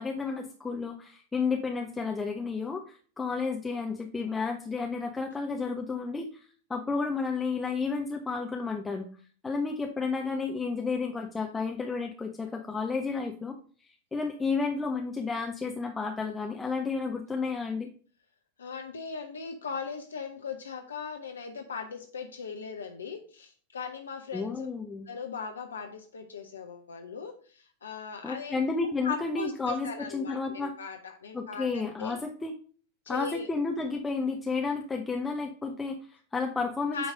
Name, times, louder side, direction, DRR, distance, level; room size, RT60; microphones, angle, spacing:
voice 1, 0.0-9.1 9.4-13.6 13.8-17.9 24.3-25.1 28.2-30.7 31.3-32.5 33.1-37.1, left 4 dB, 10° left, 2 dB, 0.7 m, -32 dB
voice 2, 18.6-24.7 25.1-28.6 29.0-32.2 33.1-33.5 36.9-37.1, left 6 dB, 70° left, 4 dB, 0.8 m, -39 dB
9.2 x 3.2 x 5.1 m, 0.44 s
figure-of-eight pair, 90°, 0 cm